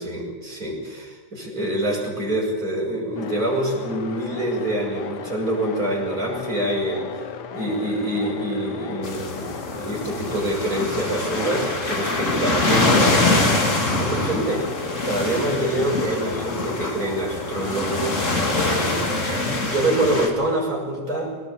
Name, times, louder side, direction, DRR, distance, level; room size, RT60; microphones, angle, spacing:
voice 1, 0.0-7.3 7.5-13.2 14.0-14.7 15.0-19.1 19.5-21.3, right 1 dB, 45° right, -2 dB, 7.1 m, -26 dB
sound 1, 3.2-18.3, left 6 dB, 60° left, 1.6 m, -36 dB
sound 2, 9.0-20.3, left 2 dB, 40° left, 2.9 m, -24 dB
21.5 x 19.0 x 8.7 m, 1.4 s
omnidirectional pair, 2.1 m